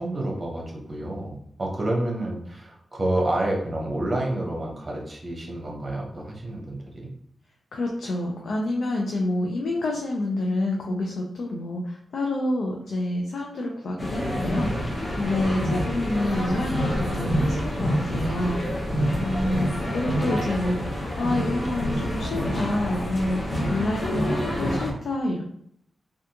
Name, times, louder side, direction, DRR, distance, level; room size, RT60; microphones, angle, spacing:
voice 1, 0.0-7.1 15.4-15.5 19.3-20.0, right 1 dB, 35° right, -1 dB, 1.0 m, -29 dB
voice 2, 7.7-18.8 19.2-25.4, left 1 dB, 75° left, -1 dB, 0.5 m, -28 dB
sound 1, 14.0-24.9, equal, 30° left, 0.9 m, -27 dB
3.4 x 2.4 x 2.8 m, 0.68 s
cardioid pair, 75°, 0 cm